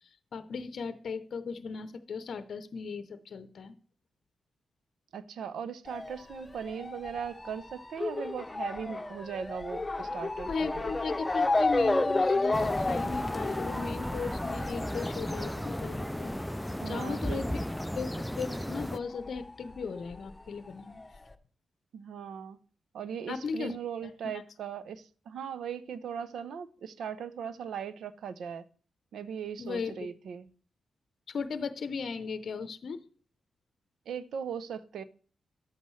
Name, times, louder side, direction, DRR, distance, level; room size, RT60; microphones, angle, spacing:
voice 1, 0.0-3.7 10.5-16.3 16.8-17.6 17.9-21.0 23.3-23.8 24.0-24.1 29.6-30.1 31.3-33.0, left 5 dB, 65° left, 0.6 m, -37 dB
voice 2, 5.1-10.9 16.8-17.4 21.9-22.6 22.9-28.6 29.1-30.5 34.1-35.0, right 7 dB, 80° right, 0.6 m, -39 dB
Motor vehicle (road) / Siren, 5.9-18.9 19.1-20.3 21.0-21.1 21.3-21.4, left 2 dB, 25° left, 0.9 m, -32 dB
sound 1, 12.5-19.0, equal, 5° left, 0.4 m, -35 dB
11.5 x 8.1 x 3.2 m
supercardioid pair, 50°, 0 cm